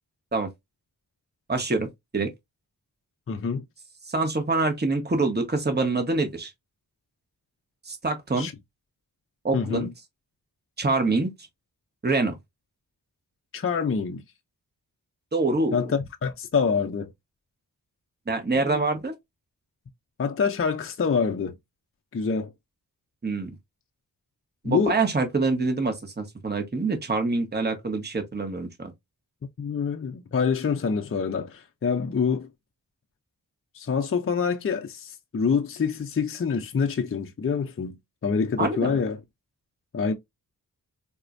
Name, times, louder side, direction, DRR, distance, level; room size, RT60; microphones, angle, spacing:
voice 1, 1.5-1.9 2.1-2.3 4.0-6.5 7.9-8.5 9.4-9.9 10.8-11.3 12.0-12.4 15.3-15.8 18.3-19.1 23.2-23.5 24.6-28.9 38.6-39.0, right 3 dB, 25° right, 1.1 m, -25 dB
voice 2, 3.3-3.6 8.4-8.5 9.5-9.9 13.5-14.2 15.7-17.1 18.6-18.8 20.2-21.6 22.1-22.5 24.6-25.0 29.6-32.5 33.7-39.2 39.9-40.1, left 5 dB, 35° left, 0.5 m, -26 dB
4.2 x 2.1 x 2.5 m
cardioid pair, 50°, 40 cm